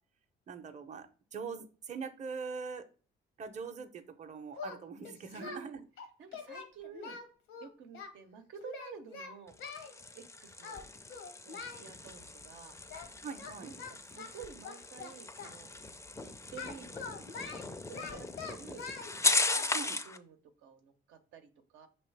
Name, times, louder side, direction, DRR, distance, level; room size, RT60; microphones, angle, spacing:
voice 1, 0.5-2.8 3.4-5.7 13.2-13.7 19.7-20.0, right 5 dB, 35° right, 6 dB, 0.6 m, -42 dB
Singing, 4.5-5.6 6.0-8.1 8.6-9.9 10.6-10.8 11.1-11.8 12.9-13.1 13.4-15.6 16.6-19.1 19.4-19.6, left 5 dB, 85° left, 0.9 m, -44 dB
voice 2, 5.3-5.8 6.2-7.2 7.6-9.5 10.1-10.9 11.5-12.8 13.6-15.7 16.2-18.9 19.2-19.3 19.5-19.8 20.0-21.9, right 6 dB, 85° right, 6 dB, 0.7 m, -51 dB
sound 1, 9.5-20.2, left 3 dB, 15° left, 0.4 m, -37 dB
5.3 x 3.0 x 3.2 m, 0.37 s
cardioid pair, 90°, 20 cm